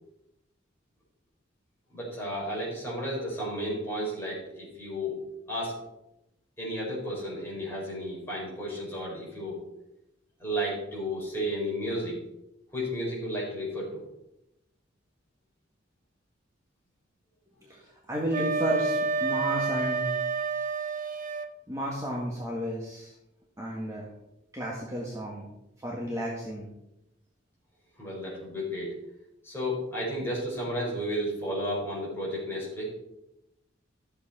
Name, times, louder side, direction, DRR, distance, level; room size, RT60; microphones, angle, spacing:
voice 1, 1.9-5.2 5.5-5.8 6.6-9.6 10.4-12.2 12.7-14.0 28.0-28.9 29.4-32.9, equal, 10° left, -5 dB, 5.0 m, -33 dB
voice 2, 17.6-20.0 21.7-23.1 23.6-24.1 24.5-25.5 25.8-26.7, right 1 dB, 15° right, -4 dB, 1.7 m, -32 dB
Wind instrument woodwind instrument, 18.3-21.5, right 4 dB, 45° right, 0.8 m, -29 dB
13.0 x 7.9 x 4.4 m, 0.89 s
head